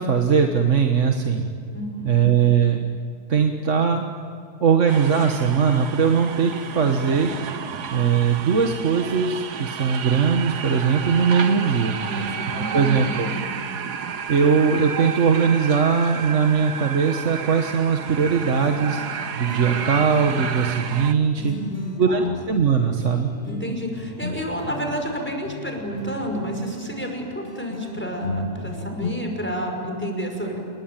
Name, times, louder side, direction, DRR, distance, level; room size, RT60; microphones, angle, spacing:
voice 1, 0.0-1.5 2.0-2.8 3.3-4.0 4.6-7.3 7.9-12.0 12.7-13.3 14.3-19.0 19.3-21.5 22.0-23.3, right 6 dB, 50° right, 4 dB, 1.7 m, -20 dB
voice 2, 1.7-2.1 11.9-13.7 21.4-22.2 23.5-30.6, equal, 5° left, 2 dB, 5.6 m, -30 dB
sound 1, 4.9-21.1, right 7 dB, 75° right, 1.7 m, -32 dB
sound 2, 18.2-29.1, left 2 dB, 35° left, 2.1 m, -35 dB
28.5 x 22.5 x 9.1 m, 2.6 s
omnidirectional pair, 1.8 m